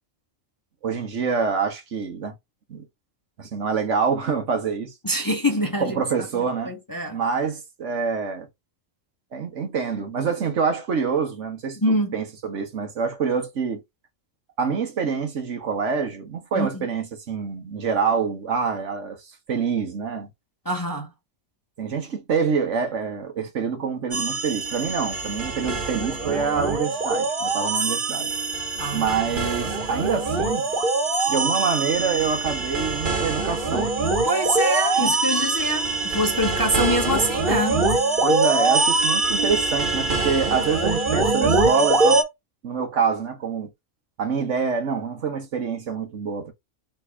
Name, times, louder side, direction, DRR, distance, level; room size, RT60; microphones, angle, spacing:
voice 1, 0.8-2.3 2.7-2.9 3.4-4.9 5.8-6.7 7.1-8.5 9.3-13.8 14.6-19.2 19.5-20.3 21.8-28.3 28.9-30.7 31.3-33.9 35.0-35.1 38.2-42.2 42.6-43.7 44.2-46.5, right 6 dB, 70° right, 1.5 m, -26 dB
voice 2, 5.0-6.0 6.7-7.2 11.8-12.2 16.6-16.7 20.7-21.1 28.8-29.1 34.2-37.8, equal, 20° left, 0.8 m, -24 dB
sound 1, 24.1-42.2, right 3 dB, 40° right, 1.5 m, -23 dB
3.7 x 3.4 x 3.4 m
omnidirectional pair, 1.3 m